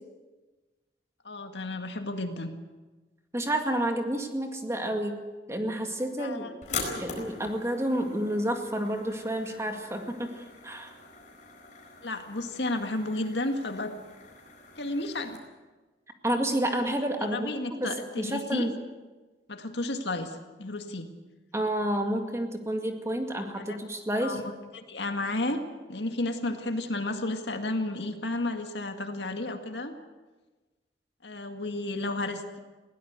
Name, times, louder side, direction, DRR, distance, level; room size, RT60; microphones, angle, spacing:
voice 1, 1.2-2.5 6.2-7.0 12.0-13.9 14.8-15.4 17.3-18.7 19.5-21.1 23.6-23.8 24.2-24.4 24.7-25.6 25.9-29.9 31.2-32.6, left 2 dB, 70° left, 6 dB, 2.0 m, -32 dB
voice 2, 3.3-5.2 5.5-6.5 7.0-10.9 16.2-18.7 21.5-24.4, right 1 dB, 15° right, 5 dB, 2.0 m, -30 dB
sound 1, 6.6-15.4, left 4 dB, 45° left, 4.6 m, -42 dB
21.0 x 17.0 x 8.2 m, 1.2 s
head